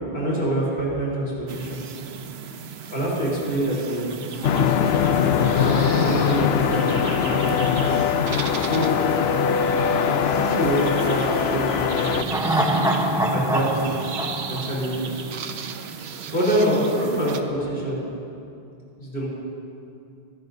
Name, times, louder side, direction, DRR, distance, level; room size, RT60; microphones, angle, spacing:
voice 1, 0.1-1.8 2.9-4.4 5.4-7.8 8.5-9.0 10.3-12.6 13.3-15.2 16.3-18.0 19.0-19.3, right 1 dB, 60° left, -6 dB, 4.1 m, -26 dB
sound 1, 1.5-17.4, right 6 dB, 85° right, 1.0 m, -36 dB
sound 2, 4.4-12.2, left 7 dB, 80° left, 0.9 m, -21 dB
sound 3, 12.2-15.6 15.9-16.0, right 1 dB, 5° right, 0.9 m, -24 dB
26.0 x 11.5 x 2.7 m, 2.6 s
omnidirectional pair, 1.1 m